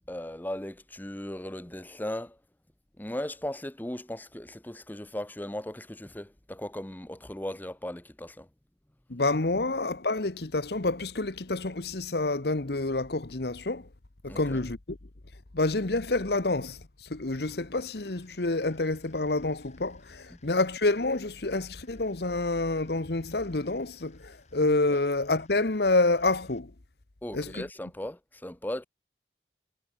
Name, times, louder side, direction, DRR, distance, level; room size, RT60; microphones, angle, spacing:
voice 1, 0.1-2.4 3.0-8.5 14.3-14.6 20.3-20.4 27.2-28.8, left 1 dB, 10° left, 0.8 m, -37 dB
voice 2, 9.1-13.9 14.2-15.0 15.5-26.7 27.3-27.7, left 2 dB, 60° left, 1.2 m, -28 dB
sound 1, 17.8-26.6, left 5 dB, 40° left, 7.5 m, -64 dB
head